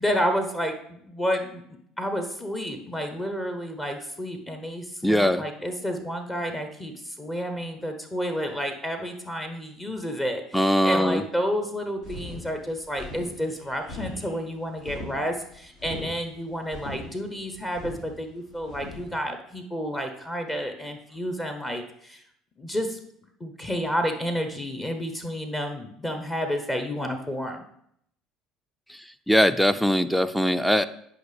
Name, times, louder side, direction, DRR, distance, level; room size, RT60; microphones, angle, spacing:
voice 1, 0.0-1.6 2.0-22.2 22.6-23.0 23.4-27.6, equal, 20° left, 5 dB, 1.0 m, -30 dB
voice 2, 5.0-5.4 10.5-11.2 29.3-30.9, equal, ahead, 12 dB, 0.4 m, -21 dB
sound 1, 12.0-19.1, left 1 dB, 65° left, 3.2 m, -40 dB
9.8 x 4.8 x 3.5 m, 0.70 s
hypercardioid pair, 65°, 0 cm